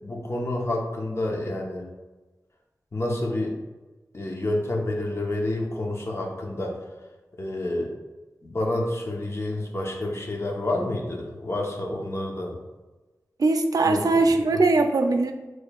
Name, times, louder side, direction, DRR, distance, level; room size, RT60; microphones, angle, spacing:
voice 1, 0.0-1.9 2.9-3.6 4.1-6.8 7.4-7.9 8.4-12.6 13.8-14.3, left 1 dB, 45° left, 0 dB, 0.8 m, -29 dB
voice 2, 13.4-15.3, right 3 dB, 80° right, 6 dB, 0.4 m, -21 dB
6.6 x 3.1 x 2.3 m, 1.2 s
wide cardioid pair, 80°, 6 cm